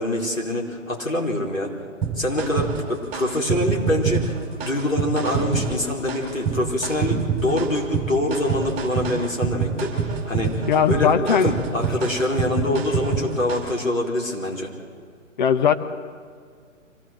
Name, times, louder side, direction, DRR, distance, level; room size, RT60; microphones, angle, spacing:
voice 1, 0.0-1.7 2.2-14.7, left 1 dB, 80° left, -1 dB, 4.8 m, -25 dB
sound 1, 2.0-13.8, right 6 dB, 20° right, 3.8 m, -27 dB
voice 2, 10.7-11.6 15.4-15.7, left 7 dB, 35° left, 10 dB, 1.1 m, -19 dB
25.0 x 17.0 x 7.8 m, 2.1 s
figure-of-eight pair, 130°, 39 cm